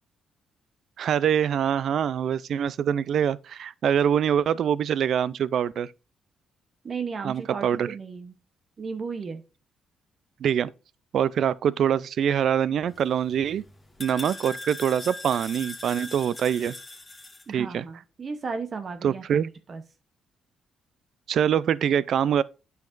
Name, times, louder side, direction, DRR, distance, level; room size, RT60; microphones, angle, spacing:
voice 1, 1.0-5.9 7.2-7.9 10.4-10.7 11.1-13.6 14.0-16.7 17.5-17.8 19.0-19.5 21.3-22.4, right 9 dB, 65° right, 0.4 m, -24 dB
voice 2, 6.8-8.4 8.8-9.4 17.5-19.8, right 5 dB, 45° right, 0.8 m, -35 dB
sound 1, 12.9-17.4, left 2 dB, 20° left, 1.9 m, -41 dB
8.9 x 5.8 x 2.5 m
cardioid pair, 90°, 0 cm